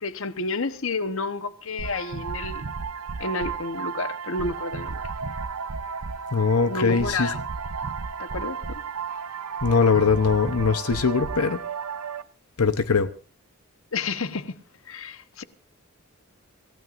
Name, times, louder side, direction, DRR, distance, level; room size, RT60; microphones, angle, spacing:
voice 1, 0.0-2.6 3.2-4.9 6.7-7.4 8.2-8.8 13.9-14.6 14.9-15.4, left 3 dB, 65° left, 1.1 m, -30 dB
sound 1, 1.8-12.2, right 5 dB, 90° right, 0.8 m, -33 dB
voice 2, 6.3-7.3 9.6-11.6 12.6-13.1, left 5 dB, 85° left, 0.9 m, -21 dB
27.0 x 16.0 x 2.6 m
head